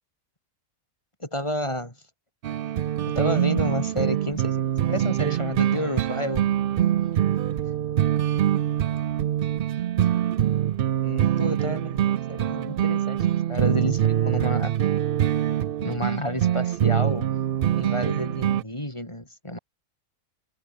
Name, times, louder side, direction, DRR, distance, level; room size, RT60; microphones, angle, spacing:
voice 1, 1.2-1.9 3.2-4.6 4.9-6.4 11.0-14.7 15.8-17.3 17.8-19.6, left 1 dB, 20° left, 4.2 m, -30 dB
sound 1, 2.4-18.6, right 11 dB, 75° right, 0.5 m, -24 dB
omnidirectional pair, 1.6 m